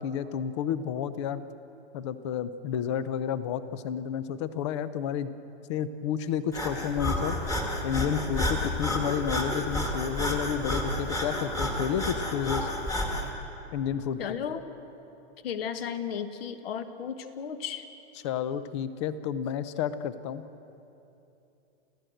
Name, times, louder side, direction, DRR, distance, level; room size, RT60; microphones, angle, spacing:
voice 1, 0.0-1.4 1.9-5.3 5.7-7.4 7.8-12.7 13.7-14.4 18.2-20.4, left 8 dB, 25° left, 14 dB, 0.6 m, -31 dB
Breathing, 6.5-13.3, left 1 dB, 10° left, 1.7 m, -30 dB
voice 2, 14.2-14.6 15.4-17.8, left 8 dB, 55° left, 10 dB, 1.6 m, -34 dB
28.5 x 15.0 x 7.8 m, 2.9 s
supercardioid pair, 170°, 35 cm